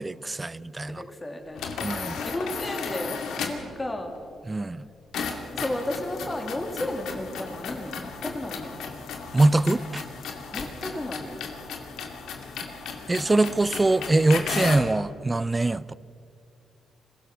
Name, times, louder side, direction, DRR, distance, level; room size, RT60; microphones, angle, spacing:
voice 1, 0.0-1.0 1.8-2.1 4.5-4.8 9.3-10.0 13.1-15.9, right 2 dB, 20° right, 19 dB, 0.5 m, -23 dB
voice 2, 0.9-4.1 5.5-8.8 10.5-11.4, left 1 dB, 15° left, 4 dB, 2.9 m, -33 dB
sound 1, 1.5-3.7 5.1-14.9, left 5 dB, 85° left, 2.3 m, -35 dB
26.0 x 16.5 x 6.2 m, 2.5 s
cardioid pair, 90°, 0 cm